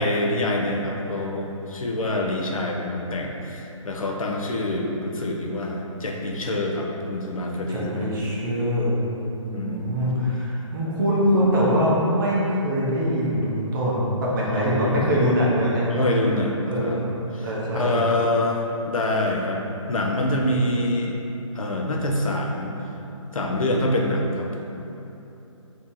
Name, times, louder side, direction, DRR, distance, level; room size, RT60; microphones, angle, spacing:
voice 1, 0.0-8.1 9.5-9.9 14.4-15.2 15.9-17.0 17.3-19.6 19.9-21.1 21.5-22.7 23.3-24.6, left 1 dB, 85° left, 0 dB, 0.6 m, -26 dB
voice 2, 7.7-9.0 9.4-16.0 16.7-17.1 17.4-17.9, equal, 40° right, -6 dB, 0.7 m, -23 dB
2.7 x 2.7 x 3.7 m, 3.0 s
hypercardioid pair, 150°, 17 cm